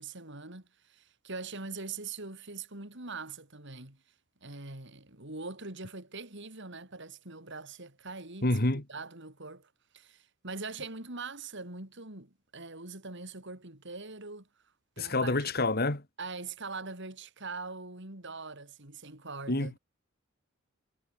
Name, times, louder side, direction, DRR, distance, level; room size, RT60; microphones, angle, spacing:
voice 1, 0.0-4.0 4.4-9.7 9.9-14.5 15.0-15.5 16.2-19.8, right 3 dB, 60° right, 4.2 m, -42 dB
voice 2, 8.4-8.8 15.0-16.0 19.5-19.8, left 2 dB, 45° left, 2.5 m, -28 dB
head